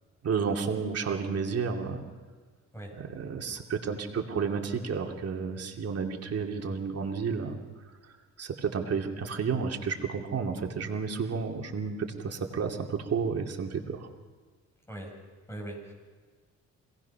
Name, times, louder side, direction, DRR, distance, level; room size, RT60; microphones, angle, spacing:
voice 1, 0.2-2.0 3.0-7.6 8.0-14.1, right 5 dB, 55° right, 2 dB, 2.6 m, -31 dB
voice 2, 15.5-15.9, right 1 dB, 10° left, 0 dB, 7.9 m, -40 dB
26.0 x 18.5 x 5.9 m, 1.5 s
cardioid pair, 90°, 30 cm